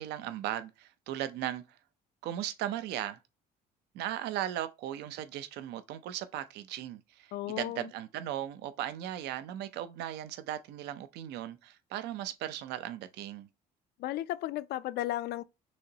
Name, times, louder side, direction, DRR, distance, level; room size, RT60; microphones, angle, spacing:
voice 1, 0.0-1.8 2.2-3.2 3.9-13.5, right 12 dB, 85° right, 0.6 m, -37 dB
voice 2, 7.3-7.9 14.0-15.4, left 15 dB, 70° left, 0.4 m, -34 dB
6.3 x 3.0 x 2.8 m
cardioid pair, 110°, 17 cm